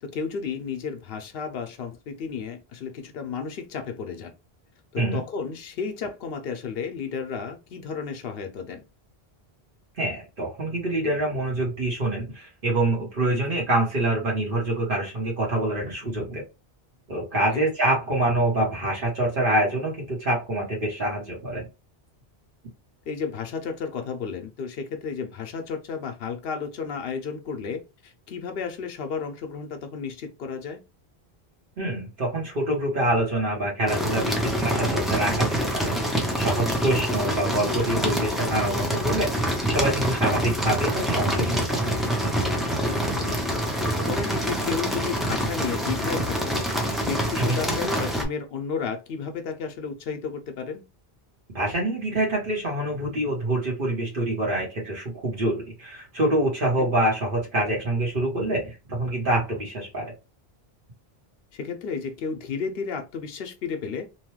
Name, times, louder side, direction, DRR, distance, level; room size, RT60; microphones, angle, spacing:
voice 1, 0.0-4.3 4.9-8.8 13.3-13.6 17.5-17.7 23.1-30.8 36.9-37.0 42.8-43.6 44.0-46.6 47.0-50.8 56.8-56.9 61.5-64.1, left 6 dB, 70° left, 0.8 m, -32 dB
voice 2, 10.0-16.4 17.1-21.7 31.8-41.9 47.3-47.6 51.5-60.1, right 1 dB, 55° right, 1.2 m, -26 dB
sound 1, 33.9-48.2, equal, ahead, 0.5 m, -26 dB
2.9 x 2.2 x 3.1 m
omnidirectional pair, 1.0 m